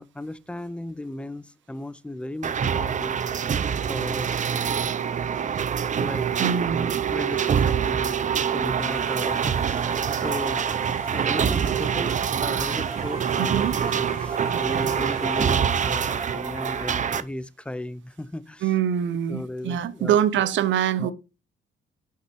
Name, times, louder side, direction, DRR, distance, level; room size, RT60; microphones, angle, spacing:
voice 1, 0.0-3.2 3.9-4.3 6.0-6.3 7.1-10.7 11.0-18.7 19.3-20.2 21.0-21.1, left 1 dB, 5° left, 0.5 m, -36 dB
sound 1, 2.4-17.2, right 7 dB, 40° right, 0.6 m, -25 dB
voice 2, 6.4-6.9 13.4-13.7 18.6-21.1, right 9 dB, 70° right, 0.8 m, -24 dB
sound 2, 8.8-16.3, left 8 dB, 85° left, 1.2 m, -49 dB
sound 3, 9.5-17.2, right 3 dB, 15° right, 1.3 m, -41 dB
6.0 x 5.6 x 4.6 m
cardioid pair, 90°, 20 cm